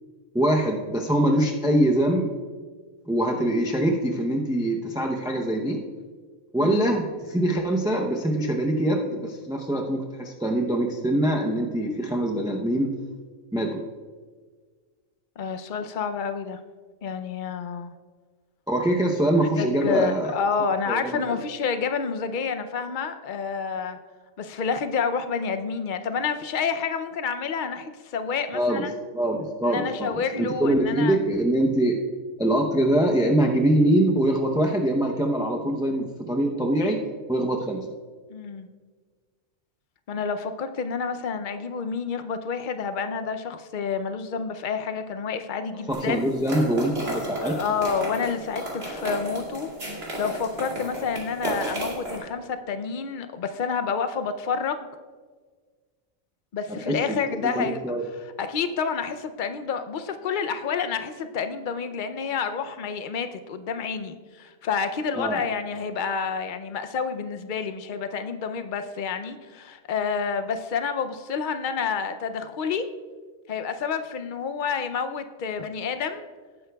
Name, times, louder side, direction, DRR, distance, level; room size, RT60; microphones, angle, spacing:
voice 1, 0.3-2.3 3.1-5.8 6.5-12.9 13.5-13.8 18.7-20.3 20.8-21.4 28.5-28.9 29.1-32.0 32.4-37.0 37.3-37.8 45.9-47.6 56.7-58.0 65.2-65.4, right 1 dB, 5° right, 1 dB, 0.3 m, -24 dB
voice 2, 6.6-6.9 15.4-16.6 17.0-17.9 19.6-24.0 24.4-28.9 29.7-31.2 38.3-38.7 40.1-46.3 47.4-49.7 50.2-54.9 56.5-57.8 58.4-72.8 73.5-76.2, left 6 dB, 55° left, 9 dB, 0.6 m, -29 dB
sound 1, 45.9-52.2, right 1 dB, 50° right, 3.0 m, -33 dB
18.0 x 9.5 x 2.3 m, 1.5 s
omnidirectional pair, 1.4 m